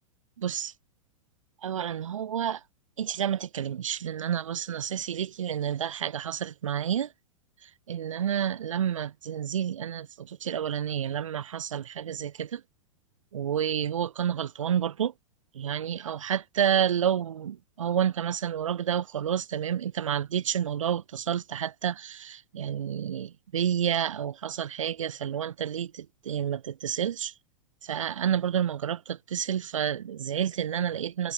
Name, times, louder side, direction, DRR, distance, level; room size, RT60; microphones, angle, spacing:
voice 1, 0.4-0.7 1.6-2.6 3.0-7.1 7.6-12.6 13.3-15.1 15.6-27.3 27.8-31.3, right 9 dB, 80° right, 5.2 m, -29 dB
hypercardioid pair, 110°, 16 cm